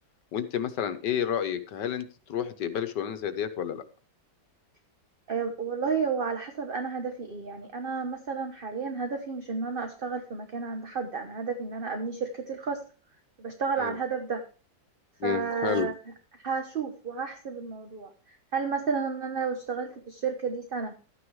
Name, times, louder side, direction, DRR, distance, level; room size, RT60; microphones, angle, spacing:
voice 1, 0.3-3.8 13.8-14.0 15.2-15.9, left 9 dB, 65° left, 10 dB, 1.5 m, -30 dB
voice 2, 5.3-12.8 13.4-14.4 15.2-15.9 16.4-20.9, right 5 dB, 40° right, 5 dB, 0.9 m, -32 dB
12.0 x 9.6 x 3.2 m, 0.37 s
omnidirectional pair, 2.1 m